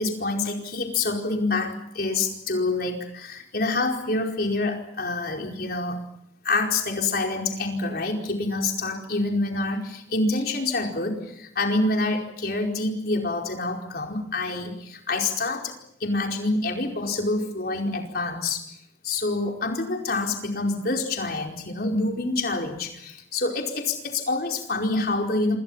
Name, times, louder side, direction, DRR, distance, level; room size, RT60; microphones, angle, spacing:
voice 1, 0.0-6.0 6.4-15.7 16.0-18.6 19.0-25.6, left 2 dB, 55° left, 2 dB, 4.8 m, -27 dB
27.5 x 27.5 x 5.7 m, 0.74 s
head